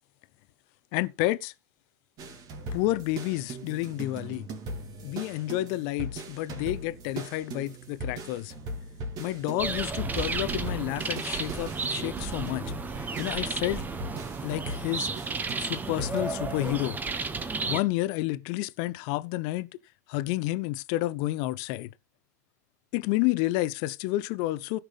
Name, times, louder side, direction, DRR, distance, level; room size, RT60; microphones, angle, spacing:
voice 1, 0.9-1.5 2.7-4.5 5.0-8.5 9.2-12.7 13.0-13.9 14.4-15.1 15.6-17.0 17.7-19.7 20.1-21.9 22.9-24.8, left 17 dB, 55° left, 0.7 m, -30 dB
sound 1, 2.2-16.2, right 2 dB, 45° right, 2.6 m, -40 dB
sound 2, 9.6-17.8, right 4 dB, 20° right, 1.2 m, -33 dB
17.0 x 5.9 x 3.4 m
hypercardioid pair, 95°, 10 cm